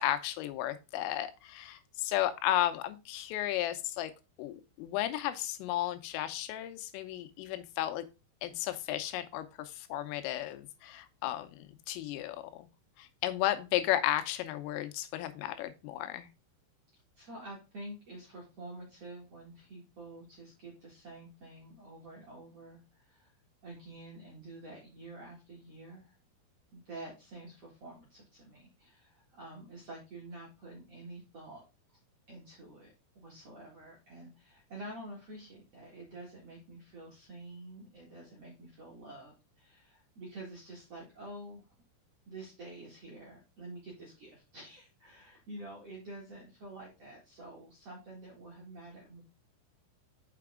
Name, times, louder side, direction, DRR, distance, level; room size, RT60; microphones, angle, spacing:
voice 1, 0.0-4.1 4.4-8.1 8.4-12.7 13.0-16.3, left 13 dB, 90° left, 9 dB, 3.4 m, -34 dB
voice 2, 17.2-23.3 23.6-26.1 26.7-31.6 31.9-32.0 32.3-41.6 42.3-49.2, right 2 dB, 45° right, -5 dB, 2.1 m, -48 dB
6.9 x 5.9 x 3.6 m, 0.29 s
omnidirectional pair, 5.7 m